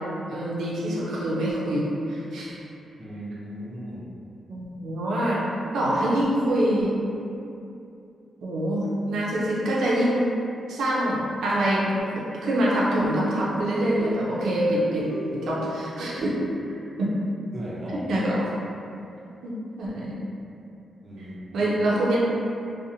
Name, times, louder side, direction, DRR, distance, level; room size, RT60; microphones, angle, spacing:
voice 1, 0.3-2.6 4.5-5.4 5.7-6.9 8.4-10.3 10.7-11.9 12.3-16.4 17.0-17.1 17.9-18.4 19.4-20.2 21.5-22.2, right 1 dB, 85° right, -6 dB, 0.5 m, -25 dB
voice 2, 3.0-4.1 17.5-18.0 21.0-21.7, equal, 30° right, -7 dB, 0.5 m, -37 dB
sound 1, 12.0-16.7, equal, 60° left, 0.5 m, -40 dB
2.7 x 2.1 x 2.6 m, 2.7 s
wide cardioid pair, 130°, 0 cm